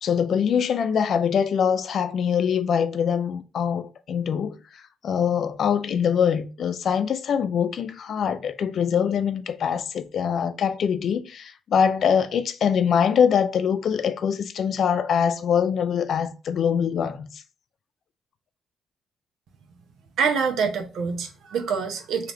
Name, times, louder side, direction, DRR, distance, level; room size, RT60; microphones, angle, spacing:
voice 1, 0.0-4.6 5.0-17.4, left 7 dB, 60° left, 0.4 m, -23 dB
voice 2, 20.2-22.3, right 6 dB, 75° right, 0.8 m, -25 dB
3.3 x 2.8 x 3.7 m
cardioid pair, 90°, 0 cm